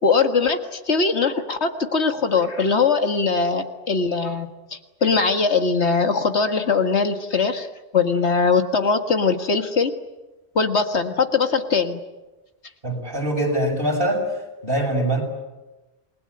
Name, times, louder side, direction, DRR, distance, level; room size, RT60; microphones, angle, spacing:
voice 1, 0.0-7.7 7.9-9.9 10.6-12.0, left 4 dB, 75° left, 7 dB, 2.0 m, -21 dB
voice 2, 12.8-14.2 14.6-15.2, right 1 dB, 50° right, 1 dB, 6.8 m, -23 dB
28.5 x 20.5 x 9.7 m, 1.1 s
omnidirectional pair, 1.1 m